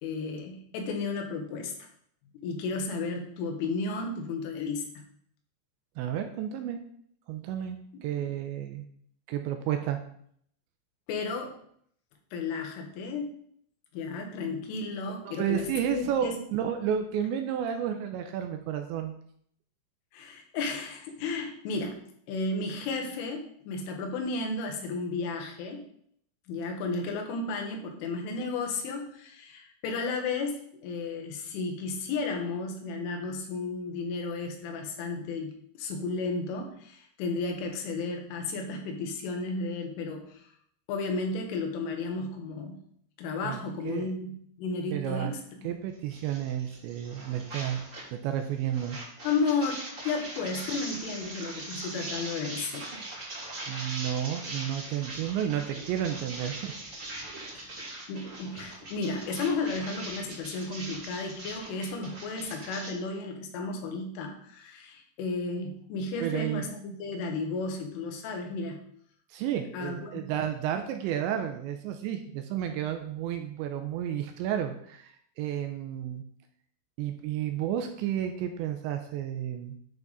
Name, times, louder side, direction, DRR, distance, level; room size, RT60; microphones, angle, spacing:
voice 1, 0.0-1.7 2.3-5.0 7.9-8.3 11.1-11.5 12.3-13.3 13.9-16.4 20.1-22.0 22.3-25.9 26.5-40.4 40.9-42.8 43.2-45.7 49.2-52.9 57.5-57.7 58.1-68.8 69.7-70.3, left 3 dB, 85° left, 3 dB, 3.9 m, -33 dB
voice 2, 6.0-6.8 7.3-8.9 9.3-10.0 15.3-19.1 43.4-43.6 43.8-44.1 44.9-45.3 45.6-47.8 48.1-49.0 53.7-56.7 57.4-57.7 66.2-66.7 69.3-76.2 77.0-79.8, right 10 dB, 85° right, 6 dB, 2.8 m, -31 dB
sound 1, 46.1-48.1 48.4-62.9, right 2 dB, 35° right, 1.3 m, -41 dB
10.5 x 6.0 x 4.1 m, 0.65 s
omnidirectional pair, 5.6 m